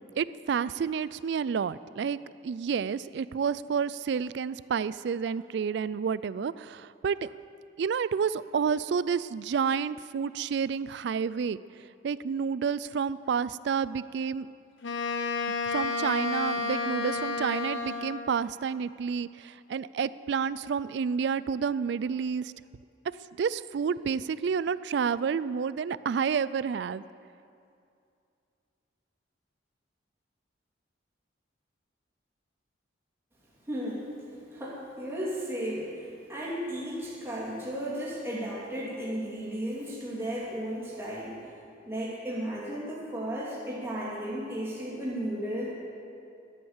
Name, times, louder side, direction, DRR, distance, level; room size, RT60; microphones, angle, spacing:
voice 1, 0.2-2.2 2.4-7.3 7.8-11.6 12.0-14.5 15.7-22.5 23.4-27.0, right 6 dB, 60° right, 17 dB, 0.3 m, -30 dB
Wind instrument woodwind instrument, 14.8-18.4, left 4 dB, 75° left, 0.9 m, -31 dB
voice 2, 33.7-34.1 34.5-41.4 41.9-45.7, equal, 15° right, -6 dB, 2.7 m, -34 dB
13.0 x 8.8 x 7.3 m, 2.5 s
head